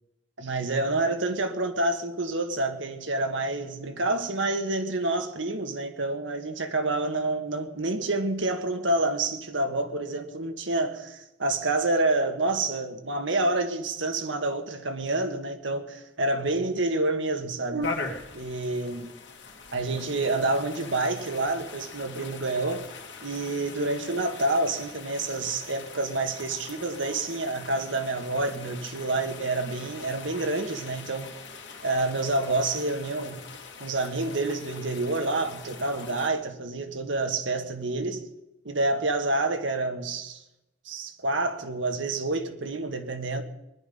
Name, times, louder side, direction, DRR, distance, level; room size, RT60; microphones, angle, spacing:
voice 1, 0.4-18.0 18.3-19.1 19.7-22.9 23.2-31.3 31.8-33.4 33.8-38.2 38.7-40.4 40.9-43.4, right 2 dB, 80° right, 6 dB, 1.7 m, -28 dB
sound 1, 17.8-36.3, left 4 dB, 70° left, 2.3 m, -42 dB
20.0 x 11.5 x 5.5 m, 0.93 s
head